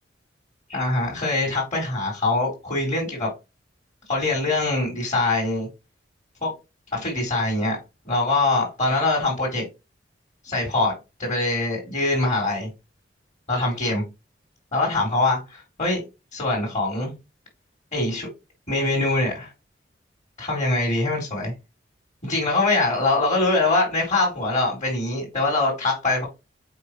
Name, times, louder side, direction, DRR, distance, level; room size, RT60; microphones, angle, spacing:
voice 1, 0.7-3.3 4.1-5.7 6.4-6.5 6.9-7.8 8.1-9.6 10.4-10.9 11.2-12.7 13.5-14.0 14.7-16.0 16.3-17.1 17.9-18.3 18.7-19.5 20.4-21.5 22.2-26.2, left 2 dB, 40° left, 3.5 m, -23 dB
6.9 x 4.9 x 3.2 m
head